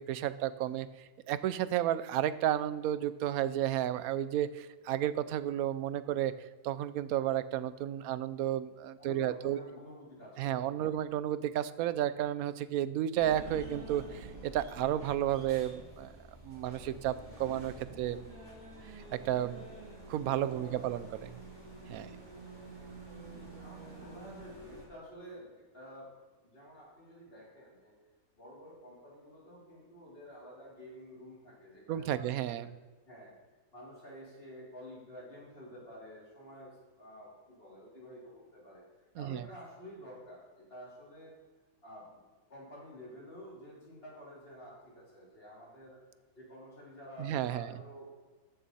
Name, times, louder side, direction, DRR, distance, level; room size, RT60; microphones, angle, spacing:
voice 1, 0.0-6.3 6.6-9.6 10.4-16.1 16.4-18.2 19.0-19.7 20.1-21.3 21.9-22.1 31.9-32.7 39.2-39.5 47.2-47.7, right 11 dB, 75° right, 15 dB, 1.0 m, -32 dB
voice 2, 9.0-10.9 20.5-21.2 21.9-22.2 23.2-26.1 26.4-28.0 28.4-32.5 33.1-33.3 33.7-38.9 39.2-41.3 41.8-42.2 42.5-46.0 46.4-48.1, equal, 40° left, -6 dB, 4.0 m, -50 dB
sound 1, 13.2-24.9, right 2 dB, 20° right, 3.2 m, -48 dB
14.0 x 6.3 x 4.2 m, 1.4 s
omnidirectional pair, 1.6 m